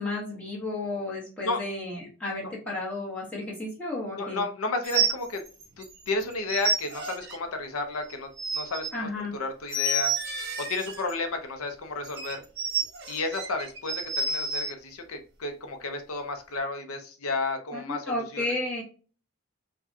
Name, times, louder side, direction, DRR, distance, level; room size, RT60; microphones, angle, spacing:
voice 1, 0.0-4.4 8.9-9.3 17.7-18.8, left 2 dB, 5° left, -6 dB, 1.4 m, -33 dB
voice 2, 4.2-5.4 5.8-10.1 10.6-12.4 13.1-18.5, left 3 dB, 85° left, 5 dB, 0.7 m, -32 dB
sound 1, 4.8-5.9 6.2-7.4 8.1-8.9 9.7-11.1 12.0-14.7, right 3 dB, 50° right, 0.9 m, -30 dB
4.7 x 2.3 x 2.7 m, 0.38 s
head